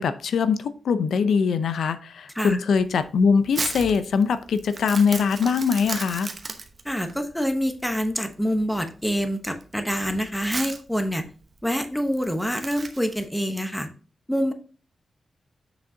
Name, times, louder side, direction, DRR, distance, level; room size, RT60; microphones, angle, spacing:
voice 1, 0.0-6.3, left 5 dB, 90° left, 11 dB, 0.6 m, -22 dB
Crumpling crinkling, 2.7-13.2, right 4 dB, 35° right, 0.8 m, -36 dB
voice 2, 6.8-11.2 11.6-13.9 14.3-14.5, equal, 5° left, 7 dB, 0.9 m, -26 dB
7.2 x 6.1 x 2.7 m, 0.38 s
wide cardioid pair, 155°, 0 cm